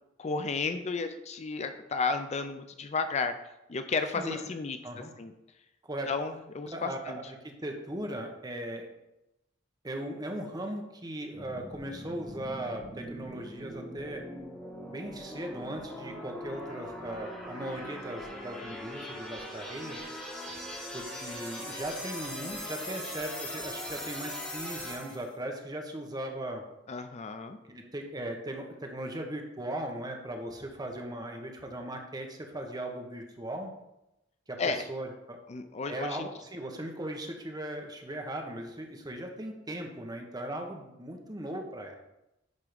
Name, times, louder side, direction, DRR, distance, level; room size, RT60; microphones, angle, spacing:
voice 1, 0.2-3.3 3.7-4.8 5.2-5.3 6.1-7.2 26.9-27.6 34.6-34.8 35.5-36.3, left 4 dB, 35° left, 8 dB, 0.5 m, -32 dB
voice 2, 6.7-8.9 9.8-14.2 14.9-20.0 20.9-26.6 27.7-33.7 34.5-35.4 35.9-42.0, right 1 dB, 20° right, 3 dB, 1.1 m, -38 dB
sound 1, 11.3-25.3, equal, 5° left, 2.2 m, -41 dB
10.5 x 3.6 x 5.1 m, 0.91 s
head